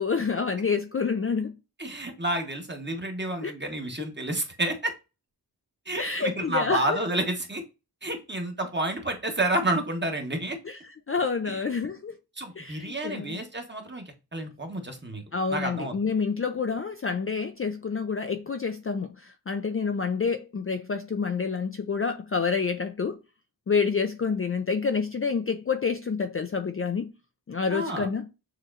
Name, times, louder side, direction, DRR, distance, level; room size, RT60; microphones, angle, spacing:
voice 1, 0.0-1.5 3.4-3.5 6.0-7.0 10.7-10.8 11.1-12.2 12.6-13.4 15.3-23.2 23.7-27.1 27.5-28.3, left 5 dB, 35° left, 0.4 m, -28 dB
voice 2, 1.8-4.9 5.9-7.6 8.0-10.6 11.5-11.6 12.4-15.2 15.5-16.0 27.7-28.1, right 1 dB, 25° right, 1.2 m, -30 dB
6.7 x 3.0 x 2.5 m
wide cardioid pair, 75°, 42 cm